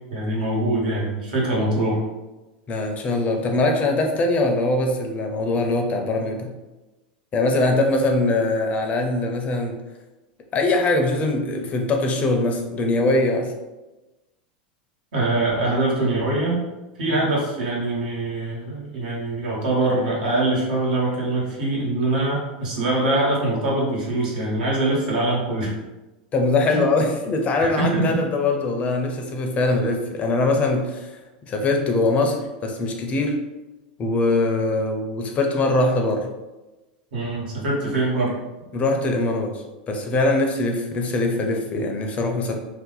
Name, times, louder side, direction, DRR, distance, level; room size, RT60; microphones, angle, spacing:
voice 1, 0.1-2.0 15.1-16.6 17.0-25.7 26.7-26.8 27.6-28.2 37.1-38.4, right 2 dB, 80° right, -4 dB, 1.3 m, -23 dB
voice 2, 2.7-6.5 7.3-9.8 10.5-13.5 17.1-17.2 26.3-31.1 31.5-33.4 34.0-36.3 38.7-42.5, left 2 dB, 30° left, 3 dB, 0.5 m, -22 dB
2.7 x 2.1 x 3.9 m, 1.1 s
supercardioid pair, 125°, 5 cm